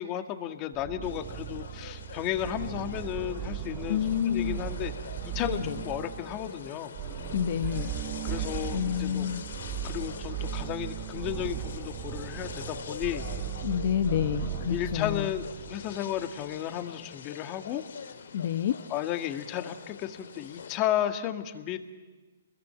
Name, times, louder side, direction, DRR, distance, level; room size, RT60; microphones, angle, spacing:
voice 1, 0.0-4.0 4.3-4.9 5.2-6.9 8.2-9.3 9.8-13.2 14.7-15.4 15.7-17.8 18.9-21.8, left 11 dB, 25° left, 9 dB, 2.0 m, -33 dB
sound 1, 0.7-16.4, right 11 dB, 30° right, 1.1 m, -37 dB
sound 2, 1.0-20.8, left 6 dB, 70° left, 2.3 m, -45 dB
voice 2, 3.9-4.6 5.4-5.8 7.3-7.9 8.7-9.4 13.6-15.3 18.3-18.8, left 10 dB, 50° left, 9 dB, 1.2 m, -29 dB
28.0 x 22.0 x 9.0 m, 1.3 s
hypercardioid pair, 150°, 0 cm